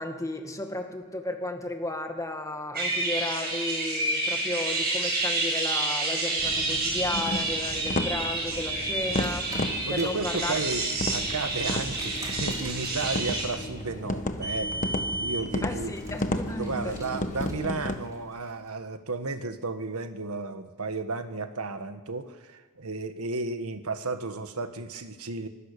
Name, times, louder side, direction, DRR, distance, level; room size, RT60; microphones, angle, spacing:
voice 1, 0.0-9.5 9.9-10.6 15.6-16.9, left 2 dB, 15° left, 4 dB, 2.1 m, -34 dB
sound 1, 2.7-13.5, right 2 dB, 45° right, 6.5 m, -29 dB
Tapping fingers, 6.4-18.0, left 1 dB, 35° left, 1.4 m, -33 dB
Car, 9.0-18.5, right 1 dB, 15° right, 4.1 m, -40 dB
voice 2, 9.8-15.9 16.6-25.5, right 3 dB, 70° right, 9 dB, 1.5 m, -33 dB
25.5 x 17.5 x 6.8 m, 1.3 s
head